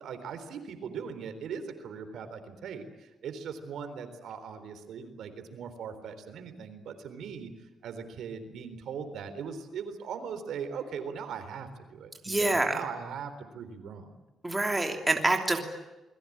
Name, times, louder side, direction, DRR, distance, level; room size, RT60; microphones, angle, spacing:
voice 1, 0.0-7.5 7.8-14.2, right 6 dB, 75° right, 9 dB, 3.8 m, -40 dB
voice 2, 12.2-12.8 14.4-15.6, right 2 dB, 10° right, 3 dB, 3.0 m, -26 dB
28.5 x 21.5 x 8.7 m, 1.0 s
cardioid pair, 140°, 0 cm